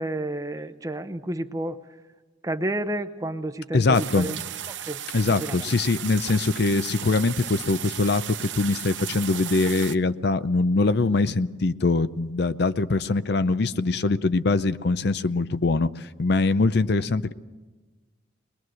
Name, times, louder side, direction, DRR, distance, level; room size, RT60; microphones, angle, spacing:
voice 1, 0.0-1.8 2.4-5.0 5.4-5.6, right 1 dB, 20° right, 10 dB, 0.7 m, -31 dB
voice 2, 3.7-4.3 5.1-17.3, left 3 dB, 60° left, 13 dB, 0.6 m, -23 dB
sound 1, 3.9-10.0, right 11 dB, 75° right, 0.8 m, -35 dB
22.0 x 21.0 x 6.3 m, 1.3 s
head